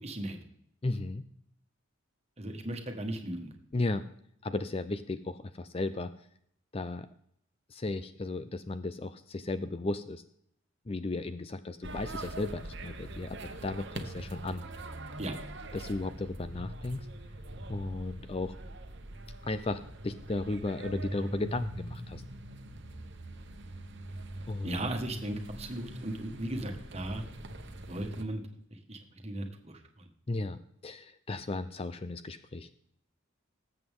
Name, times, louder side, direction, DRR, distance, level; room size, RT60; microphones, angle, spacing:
voice 1, 0.0-0.4 2.4-3.5 15.2-15.3 24.6-27.2 27.9-28.4 28.7-30.1, right 1 dB, 30° right, 4 dB, 1.6 m, -37 dB
voice 2, 0.8-1.2 3.7-4.0 4.4-6.1 6.7-7.1 7.7-10.2 10.9-14.6 15.7-17.1 17.7-18.6 19.4-22.2 24.5-24.9 30.3-32.7, left 2 dB, 25° left, 12 dB, 0.4 m, -35 dB
sound 1, 11.8-28.2, right 1 dB, 55° right, 1.1 m, -43 dB
19.0 x 7.9 x 3.7 m, 0.69 s
head